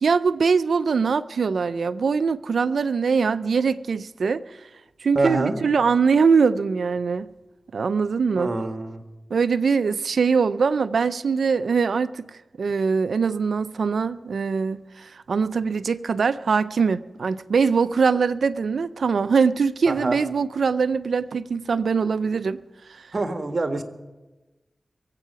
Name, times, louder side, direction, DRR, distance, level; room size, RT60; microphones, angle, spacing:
voice 1, 0.0-4.4 5.0-7.3 7.7-8.5 9.3-12.3 12.6-22.6 23.0-23.1, right 5 dB, 90° right, 14 dB, 0.4 m, -22 dB
voice 2, 5.1-5.5 8.4-9.0 19.9-20.2 23.1-23.8, right 2 dB, 55° right, 6 dB, 1.7 m, -25 dB
22.5 x 8.4 x 5.7 m, 1.1 s
cardioid pair, 50°, 0 cm